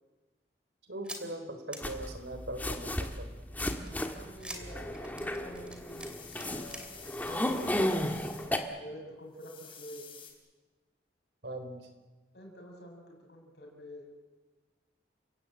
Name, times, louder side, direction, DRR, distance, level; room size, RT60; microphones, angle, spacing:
voice 1, 0.9-3.3 11.4-11.8, right 1 dB, 85° right, 7 dB, 3.7 m, -40 dB
sound 1, 1.0-1.2 1.7-1.8 3.6-6.9 7.2-7.5 7.9-8.0 8.2-8.3, right 1 dB, 5° right, 2.8 m, -45 dB
sound 2, 1.8-8.6, left 1 dB, 10° left, 1.7 m, -34 dB
voice 2, 4.1-8.4 8.8-10.1 12.3-14.1, equal, 70° left, 1 dB, 6.4 m, -48 dB
sound 3, 5.6-8.5 9.3-10.3, left 7 dB, 30° left, 3.9 m, -50 dB
29.5 x 17.0 x 8.7 m, 1.2 s
head